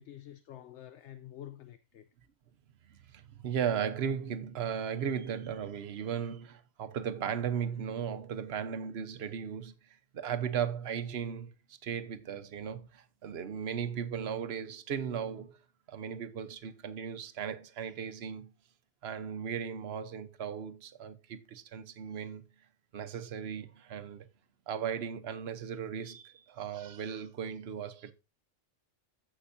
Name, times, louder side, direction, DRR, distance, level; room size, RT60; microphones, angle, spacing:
voice 1, 0.0-2.1, left 11 dB, 70° left, 0.9 m, -48 dB
voice 2, 2.8-15.6 15.9-18.5 19.0-22.5 22.9-24.3 24.7-28.1, right 8 dB, 55° right, 1.1 m, -36 dB
15.5 x 5.3 x 2.6 m
omnidirectional pair, 1.3 m